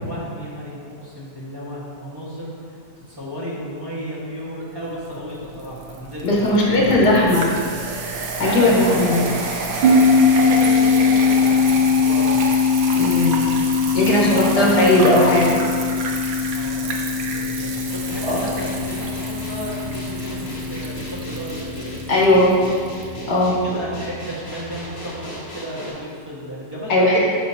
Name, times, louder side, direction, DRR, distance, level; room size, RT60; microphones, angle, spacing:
voice 1, 0.0-2.5 3.1-7.2 8.4-12.4 14.0-15.1 16.5-22.3 22.7-22.8 23.1-27.0, equal, 15° right, -8 dB, 1.8 m, -33 dB
sound 1, 5.1-23.1, right 3 dB, 60° right, 1.2 m, -30 dB
voice 2, 6.2-7.5 8.4-9.2 13.0-13.4 13.9-15.6 18.3-18.4 22.1-22.5 23.3-23.5 26.9-27.3, left 1 dB, 70° left, -5 dB, 2.2 m, -17 dB
sound 2, 9.8-22.6, left 5 dB, 80° right, 1.3 m, -21 dB
sound 3, 17.9-25.9, left 1 dB, 50° left, 2.1 m, -36 dB
10.5 x 5.6 x 2.9 m, 2.1 s
omnidirectional pair, 1.9 m